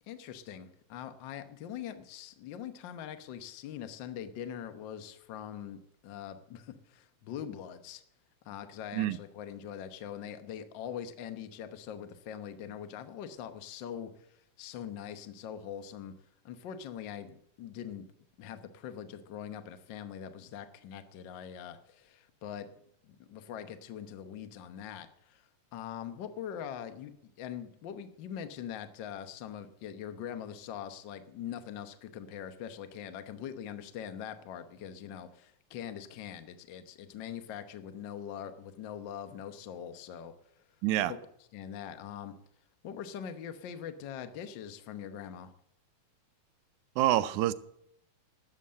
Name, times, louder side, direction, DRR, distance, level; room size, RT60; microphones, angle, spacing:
voice 1, 0.1-8.0 8.4-16.1 16.4-18.0 18.4-22.7 23.0-40.3 41.1-41.2 41.5-42.3 42.8-45.5, left 9 dB, 65° left, 1.2 m, -42 dB
voice 2, 40.8-41.1 47.0-47.5, right 14 dB, 90° right, 2.1 m, -27 dB
12.5 x 8.2 x 7.5 m
omnidirectional pair, 3.4 m